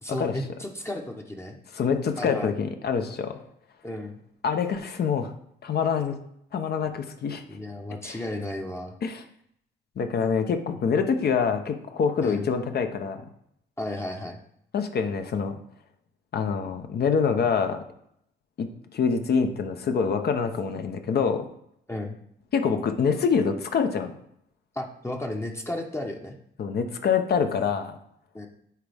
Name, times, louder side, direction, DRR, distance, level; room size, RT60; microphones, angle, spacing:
voice 1, 0.0-1.6 2.2-2.6 3.8-4.2 7.5-8.9 12.2-12.5 13.8-14.4 21.9-22.2 24.7-26.4 28.3-28.5, left 1 dB, 15° left, 2 dB, 0.8 m, -33 dB
voice 2, 1.7-3.4 4.4-5.3 5.6-6.2 6.5-7.4 8.0-8.2 9.0-9.2 10.0-13.2 14.7-15.5 16.3-17.8 18.6-18.7 18.9-21.5 22.5-24.1 26.6-28.0, left 6 dB, 55° left, 6 dB, 0.8 m, -25 dB
9.2 x 3.6 x 3.4 m, 0.71 s
cardioid pair, 90°, 20 cm